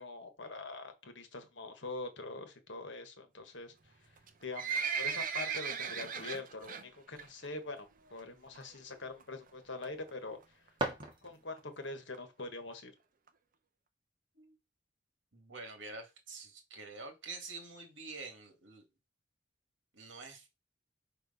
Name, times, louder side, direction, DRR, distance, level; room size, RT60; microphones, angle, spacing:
voice 1, 0.0-3.7 4.4-10.4 11.2-12.9, left 3 dB, 70° left, 1.4 m, -44 dB
Livestock farm animals working animals, 4.2-6.8 7.2-7.5 7.8-7.9 8.6-8.7 8.9-9.0 9.2-9.3 9.8-10.1 10.7-10.8 11.0-11.1 11.3-11.4 11.6-11.7 12.1-12.2 12.7-12.8 13.3-13.4, right 6 dB, 45° right, 0.8 m, -36 dB
sound 1, 10.3-11.8, right 2 dB, 25° right, 1.7 m, -39 dB
voice 2, 15.3-18.8 19.9-20.5, right 3 dB, 80° right, 2.0 m, -47 dB
4.9 x 4.5 x 5.4 m
head